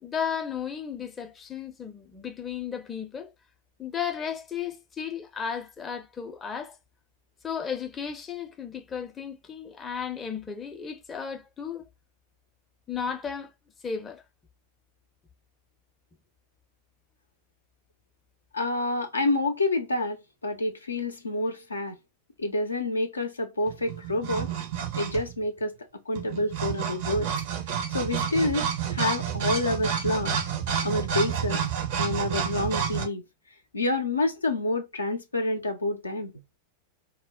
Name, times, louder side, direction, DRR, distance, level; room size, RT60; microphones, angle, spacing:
voice 1, 0.0-3.3 3.8-6.8 7.4-11.9 12.9-13.5 13.8-14.2, left 7 dB, 20° left, 0.5 m, -34 dB
voice 2, 18.5-22.0 22.4-24.5 24.9-25.7 26.1-27.3 27.9-30.4 30.8-31.7 32.0-33.2 33.7-36.3, left 2 dB, 80° left, 0.5 m, -28 dB
sound 1, 23.7-25.4 26.1-33.1, right 8 dB, 50° right, 0.5 m, -29 dB
2.2 x 2.1 x 3.4 m
figure-of-eight pair, 90°, 0 cm